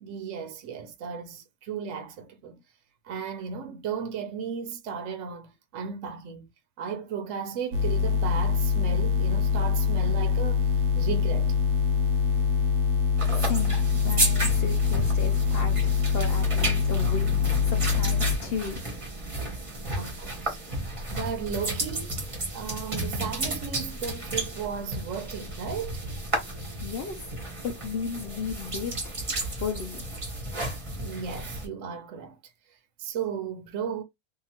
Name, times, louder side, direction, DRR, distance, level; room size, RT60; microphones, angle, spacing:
voice 1, 0.0-2.6 3.0-6.5 6.8-11.6 19.8-20.6 21.1-22.2 22.5-26.0 31.0-32.4 32.7-34.0, right 6 dB, 65° right, 0.8 m, -35 dB
sound 1, 7.7-18.4, left 6 dB, 85° right, 1.1 m, -24 dB
sound 2, 13.2-31.7, right 2 dB, 30° right, 0.7 m, -33 dB
voice 2, 13.3-17.3 17.6-18.8 26.8-27.3 27.6-30.0, left 5 dB, 75° left, 0.5 m, -35 dB
2.7 x 2.4 x 2.8 m
omnidirectional pair, 1.6 m